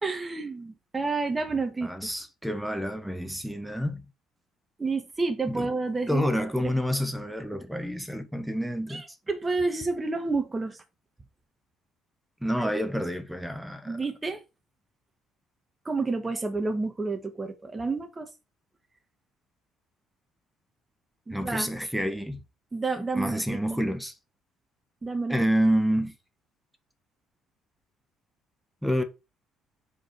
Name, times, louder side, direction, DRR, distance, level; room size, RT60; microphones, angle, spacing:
voice 1, 0.0-2.1 4.8-6.2 6.6-6.8 8.9-10.8 12.6-12.7 13.8-14.4 15.8-18.3 21.3-21.7 22.7-23.8 25.0-25.4, right 3 dB, 25° right, 1.3 m, -30 dB
voice 2, 1.8-4.0 5.5-5.7 6.1-9.0 12.4-14.0 21.3-22.4 23.1-24.1 25.3-26.1 28.8-29.0, equal, 5° right, 1.1 m, -28 dB
4.9 x 4.4 x 4.5 m
hypercardioid pair, 55°, 0 cm